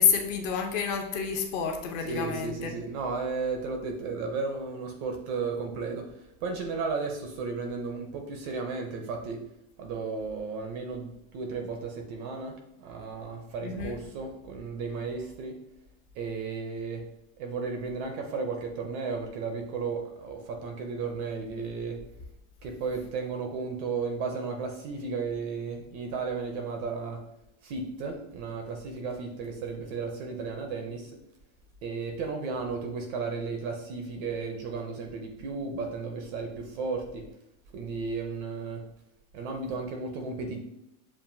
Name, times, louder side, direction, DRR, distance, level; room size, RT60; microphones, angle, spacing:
voice 1, 0.0-2.7 13.6-14.0, left 7 dB, 40° left, 3 dB, 0.6 m, -28 dB
voice 2, 2.0-9.4 9.8-15.6 16.1-17.0 17.4-22.0 22.6-27.2 27.6-31.1 31.8-37.2 37.7-38.8 39.3-40.6, right 4 dB, 35° right, 3 dB, 0.4 m, -34 dB
7.2 x 2.5 x 2.6 m, 0.84 s
supercardioid pair, 170°, 38 cm